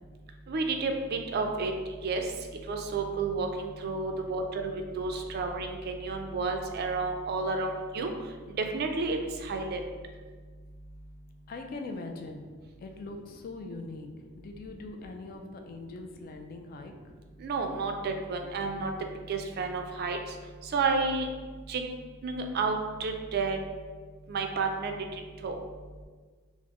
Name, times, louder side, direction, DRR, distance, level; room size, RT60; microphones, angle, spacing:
voice 1, 0.5-1.7 2.0-2.2 2.7-8.1 8.6-9.8 17.4-18.9 19.3-20.2 20.7-21.3 21.7-21.8 22.2-23.6 24.3-24.9 25.4-25.5, right 4 dB, 50° right, 4 dB, 0.3 m, -31 dB
voice 2, 11.5-12.5 12.8-14.1 14.4-16.9, left 3 dB, 45° left, 4 dB, 0.3 m, -41 dB
4.0 x 2.0 x 2.9 m, 1.5 s
head